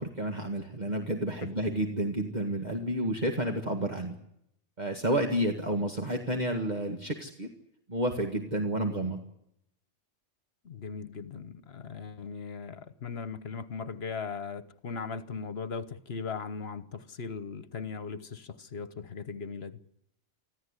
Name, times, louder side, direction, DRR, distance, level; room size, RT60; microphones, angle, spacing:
voice 1, 0.0-4.2 4.8-7.5 7.9-9.2, right 1 dB, 40° right, 2.0 m, -30 dB
voice 2, 10.6-19.8, left 5 dB, 60° left, 1.4 m, -38 dB
25.5 x 14.5 x 9.9 m
omnidirectional pair, 1.2 m